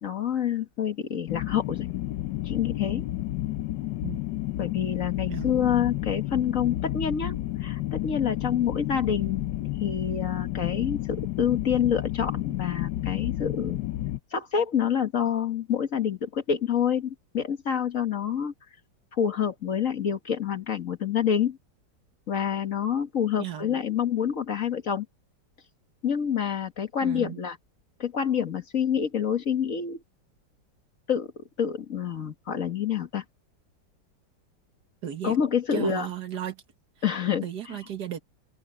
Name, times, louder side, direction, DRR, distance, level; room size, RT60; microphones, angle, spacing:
voice 1, 0.0-1.9 2.4-3.1 4.6-7.4 7.6-9.5 9.8-13.8 14.3-18.5 19.1-21.6 22.3-25.1 26.0-27.6 28.0-30.0 31.1-31.3 31.6-33.2 35.2-36.1 37.0-37.4, left 8 dB, 50° left, 1.8 m, -27 dB
sound 1, 1.3-14.2, left 15 dB, 85° left, 1.3 m, -31 dB
voice 2, 27.0-27.4 35.0-35.4 35.7-36.6 37.4-38.2, right 11 dB, 65° right, 1.9 m, -35 dB
open air
omnidirectional pair, 1.9 m